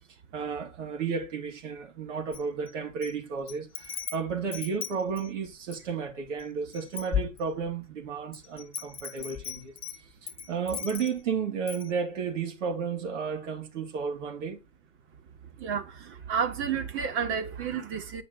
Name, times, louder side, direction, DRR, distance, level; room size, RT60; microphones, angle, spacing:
voice 1, 0.3-9.7 10.5-14.6, right 6 dB, 65° right, 3.3 m, -33 dB
Wind chime, 2.3-3.1 3.5-5.9 6.4-6.5 6.7-7.8 8.3-11.3 11.7-11.9, left 8 dB, 15° left, 1.2 m, -36 dB
voice 2, 15.6-18.2, right 7 dB, 30° right, 1.9 m, -31 dB
9.4 x 5.9 x 3.9 m
hypercardioid pair, 120°, 40 cm